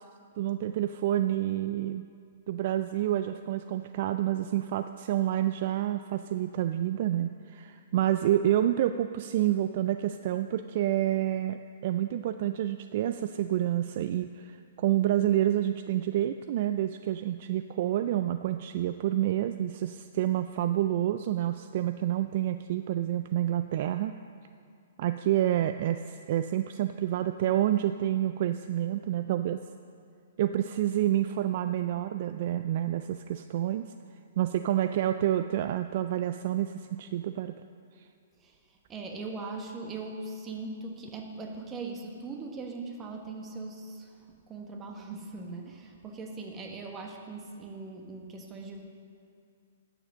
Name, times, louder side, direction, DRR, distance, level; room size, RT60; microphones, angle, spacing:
voice 1, 0.4-2.0 2.5-24.1 25.0-29.6 30.4-33.9 34.4-37.6, right 12 dB, 50° right, 10 dB, 0.3 m, -28 dB
voice 2, 38.4-48.8, right 3 dB, 20° right, 2 dB, 1.4 m, -40 dB
11.0 x 7.3 x 6.2 m, 2.4 s
hypercardioid pair, 125°, 0 cm